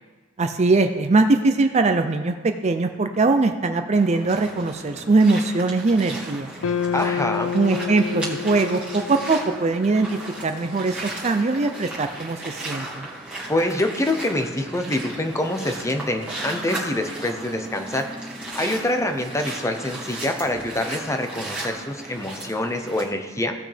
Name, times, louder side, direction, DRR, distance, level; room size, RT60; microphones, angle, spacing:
voice 1, 0.4-2.3 2.6-6.5 7.5-10.1 10.4-13.1, right 3 dB, 35° right, 7 dB, 0.5 m, -21 dB
sound 1, 4.0-23.0, right 2 dB, 5° right, 2.1 m, -35 dB
sound 2, 6.6-11.0, left 7 dB, 90° left, 0.5 m, -30 dB
voice 2, 6.9-7.5 13.5-18.1 18.5-23.5, left 1 dB, 15° left, 5 dB, 0.8 m, -25 dB
16.5 x 6.1 x 3.4 m, 1.3 s
head